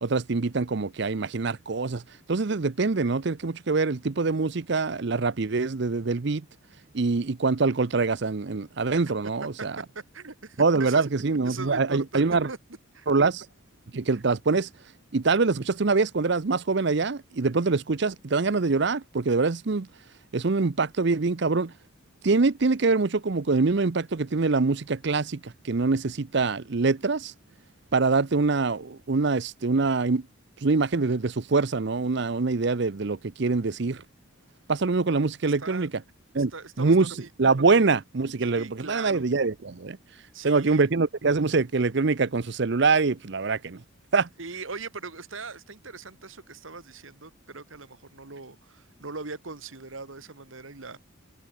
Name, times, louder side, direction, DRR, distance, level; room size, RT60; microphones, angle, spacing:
voice 1, 0.0-2.0 2.3-6.4 6.9-9.7 10.6-12.5 13.1-13.5 13.9-14.7 15.1-19.9 20.3-21.7 22.2-27.3 27.9-30.2 30.6-34.0 34.7-35.9 36.3-36.5 36.8-40.0 40.4-43.8 44.1-44.3, right 4 dB, 55° right, 0.6 m, -24 dB
voice 2, 9.6-11.1 11.4-12.2 12.5-12.6 12.9-13.1 35.4-35.9 36.3-37.3 38.4-39.3 40.3-40.9 44.4-51.0, right 4 dB, 75° right, 1.8 m, -40 dB
head